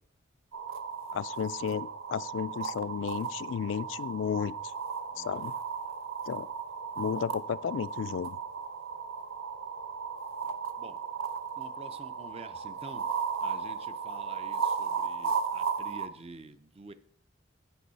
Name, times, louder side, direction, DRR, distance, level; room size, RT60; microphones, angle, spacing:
sound 1, 0.5-16.1, right 6 dB, 85° right, 0.8 m, -35 dB
voice 1, 1.1-4.5 5.2-5.5 6.3-6.5 7.0-8.4, left 7 dB, 70° left, 0.3 m, -33 dB
voice 2, 5.1-5.4 10.4-11.0 11.6-13.2 13.4-16.9, right 3 dB, 30° right, 0.5 m, -48 dB
15.0 x 5.4 x 4.1 m
head